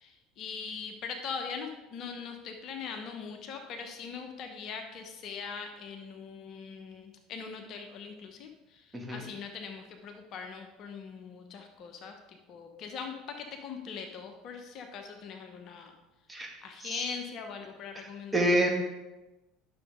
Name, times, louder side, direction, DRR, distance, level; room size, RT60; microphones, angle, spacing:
voice 1, 0.0-15.9 16.6-18.5, left 6 dB, 50° left, 5 dB, 1.0 m, -41 dB
voice 2, 18.3-18.7, right 1 dB, 10° right, 0 dB, 2.0 m, -27 dB
10.5 x 6.4 x 3.8 m, 1.0 s
hypercardioid pair, 65°, 0 cm